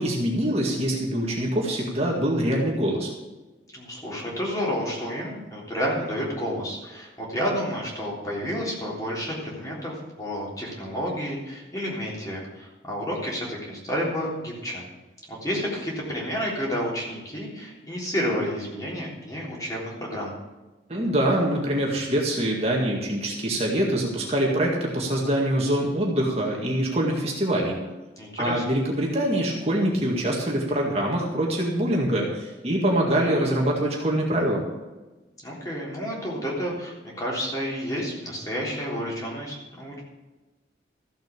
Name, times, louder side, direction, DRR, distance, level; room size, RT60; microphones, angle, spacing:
voice 1, 0.0-3.1 20.9-27.8 28.4-34.6, right 1 dB, 35° right, -2 dB, 2.0 m, -24 dB
voice 2, 3.7-14.8 15.3-20.3 28.2-28.6 35.4-40.0, equal, 20° left, -4 dB, 3.7 m, -30 dB
14.5 x 7.9 x 6.8 m, 1.2 s
head